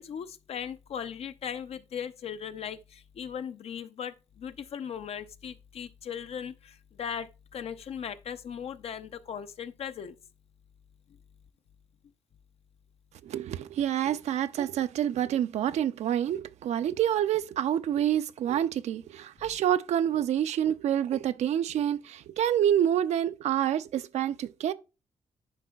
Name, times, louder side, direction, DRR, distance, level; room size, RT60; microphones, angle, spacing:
voice 1, 0.0-10.2, left 8 dB, 60° left, 0.4 m, -38 dB
voice 2, 13.2-24.7, right 10 dB, 75° right, 0.4 m, -27 dB
9.7 x 5.0 x 2.3 m
cardioid pair, 120°, 11 cm